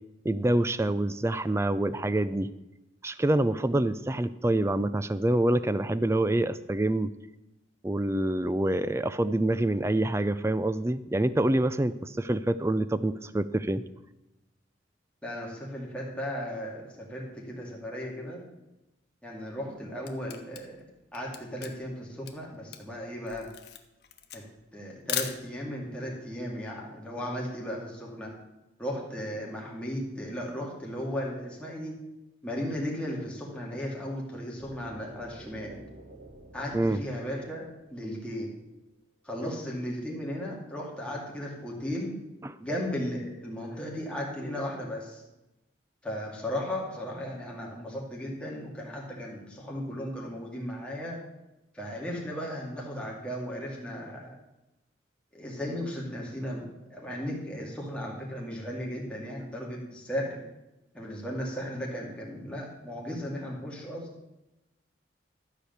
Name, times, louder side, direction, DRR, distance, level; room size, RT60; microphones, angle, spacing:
voice 1, 0.2-2.5 3.0-7.1 7.8-13.8 36.7-37.0 42.4-42.6, right 1 dB, 15° right, 14 dB, 0.4 m, -26 dB
voice 2, 15.2-18.4 19.2-20.8 21.1-23.5 24.3-24.4 24.7-28.3 28.8-31.9 32.4-35.8 36.5-38.5 39.2-42.1 42.6-45.2 46.0-51.2 51.7-54.4 55.3-56.6 56.9-60.4 60.9-64.1, equal, 5° left, -3 dB, 2.4 m, -36 dB
Camera, 19.6-25.9, left 10 dB, 60° left, 1.1 m, -38 dB
sound 1, 34.6-38.5, right 2 dB, 45° right, 1.6 m, -50 dB
13.0 x 5.1 x 8.0 m, 0.97 s
head